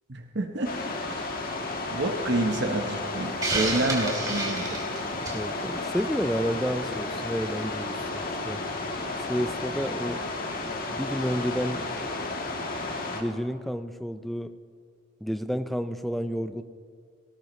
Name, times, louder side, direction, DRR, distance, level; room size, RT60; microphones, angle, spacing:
voice 1, 0.1-0.7 1.0-1.3 1.9-4.8, right 2 dB, 55° right, 4 dB, 1.1 m, -28 dB
sound 1, 0.6-13.2, left 2 dB, 45° left, 1.6 m, -33 dB
Hiss, 3.4-5.5, right 2 dB, 20° right, 2.8 m, -29 dB
voice 2, 5.3-8.6 9.3-10.2 10.9-11.8 13.1-14.5 15.2-16.6, equal, ahead, 9 dB, 0.5 m, -30 dB
18.5 x 18.5 x 3.2 m, 2.2 s
head